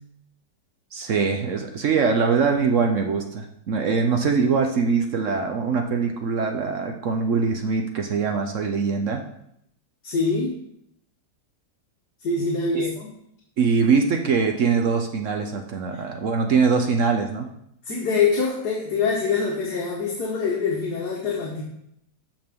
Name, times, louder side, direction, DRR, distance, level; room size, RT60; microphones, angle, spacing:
voice 1, 0.9-9.2 12.7-12.9 13.6-17.5, right 5 dB, 55° right, 4 dB, 0.9 m, -22 dB
voice 2, 10.0-10.5 12.2-13.1 17.8-21.6, left 4 dB, 65° left, -3 dB, 1.8 m, -24 dB
13.5 x 5.2 x 3.6 m, 0.75 s
omnidirectional pair, 1.9 m